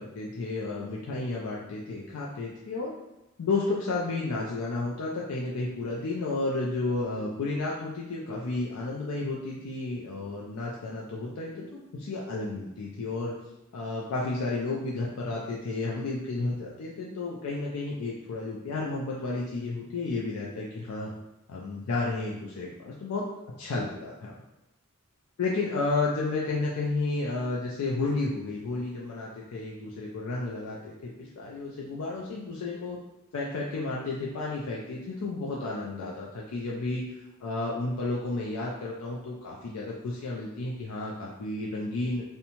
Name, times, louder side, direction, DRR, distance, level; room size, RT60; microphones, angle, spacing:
voice 1, 0.0-2.9 3.4-13.3 13.7-21.1 21.5-23.3 23.6-24.3 25.4-33.0 33.3-37.0 37.4-42.2, left 3 dB, 85° left, -4 dB, 0.4 m, -32 dB
2.7 x 2.1 x 2.8 m, 0.93 s
head